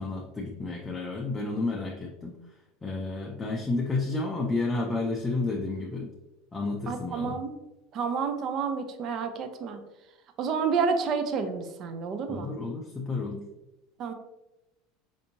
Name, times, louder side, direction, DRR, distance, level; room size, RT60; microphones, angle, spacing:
voice 1, 0.0-2.3 2.8-6.1 6.5-7.4 12.3-13.5, left 3 dB, 15° left, -1 dB, 0.4 m, -31 dB
voice 2, 6.9-7.5 7.9-9.8 10.4-12.5 14.0-14.1, right 5 dB, 45° right, 7 dB, 0.4 m, -29 dB
4.4 x 2.7 x 2.6 m, 0.95 s
supercardioid pair, 130°, 0 cm